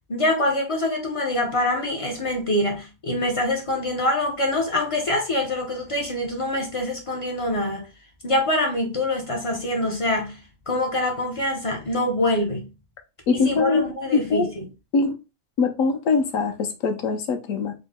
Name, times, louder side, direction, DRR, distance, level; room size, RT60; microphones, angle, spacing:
voice 1, 0.1-7.9 8.2-10.4 10.7-12.7 13.4-14.6, left 1 dB, 50° left, 0.4 m, -25 dB
voice 2, 13.3-13.8 14.1-14.5 14.9-15.2 15.6-17.7, left 4 dB, 75° left, 1.1 m, -22 dB
3.7 x 2.0 x 3.5 m
omnidirectional pair, 1.5 m